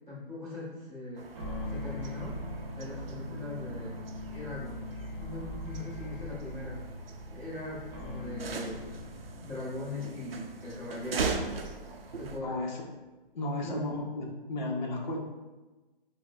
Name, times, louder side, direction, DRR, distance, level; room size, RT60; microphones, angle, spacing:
voice 1, 0.1-1.3 1.7-2.4 2.7-4.0 4.3-4.8 5.2-6.8 7.3-8.8 9.4-11.4 12.1-12.6 13.6-13.8, left 2 dB, 10° left, -15 dB, 0.9 m, -40 dB
sound 1, 1.2-12.4, right 4 dB, 75° right, 0.5 m, -40 dB
sound 2, 1.3-12.7, left 1 dB, 30° right, 0.5 m, -41 dB
voice 2, 12.4-12.8 13.3-15.2, left 2 dB, 50° left, 0 dB, 0.7 m, -34 dB
5.0 x 2.1 x 2.3 m, 1.2 s
hypercardioid pair, 165°, 29 cm